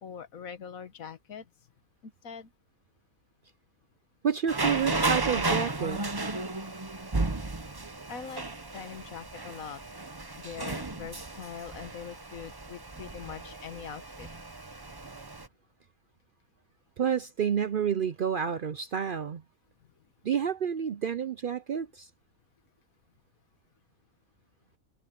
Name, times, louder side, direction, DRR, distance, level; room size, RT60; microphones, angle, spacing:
voice 1, 0.0-1.5 2.0-2.5 8.1-8.4 8.7-9.8 10.4-14.3, left 7 dB, 80° left, 1.7 m, -42 dB
voice 2, 4.2-6.0 17.0-19.4 20.2-22.1, right 7 dB, 55° right, 0.6 m, -29 dB
sound 1, 4.5-15.5, right 3 dB, 20° right, 0.9 m, -34 dB
omnidirectional pair, 1.4 m